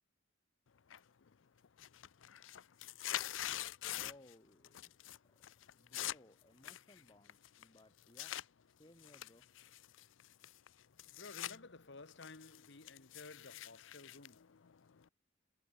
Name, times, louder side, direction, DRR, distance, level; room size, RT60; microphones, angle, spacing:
sound 1, 0.9-1.3 1.6-4.3 4.6-5.2 5.4-8.5 9.0-11.6 11.9-15.1, left 13 dB, 85° left, 0.5 m, -45 dB
voice 1, 4.0-5.0 5.2-5.4 5.7-8.4 8.7-9.5, left 1 dB, 25° left, 4.0 m, -63 dB
voice 2, 11.2-14.6, left 3 dB, 65° left, 1.6 m, -54 dB
head